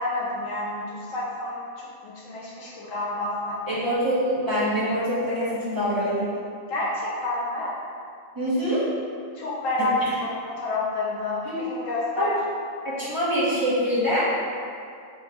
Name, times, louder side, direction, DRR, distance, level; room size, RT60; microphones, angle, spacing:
voice 1, 0.0-3.8 6.7-7.7 9.4-12.4, left 2 dB, 75° left, -6 dB, 1.3 m, -29 dB
voice 2, 3.7-6.3 8.3-8.8 11.4-11.6 12.2-12.3 12.8-14.3, equal, 15° right, -10 dB, 1.0 m, -24 dB
3.7 x 2.4 x 4.2 m, 2.4 s
omnidirectional pair, 1.4 m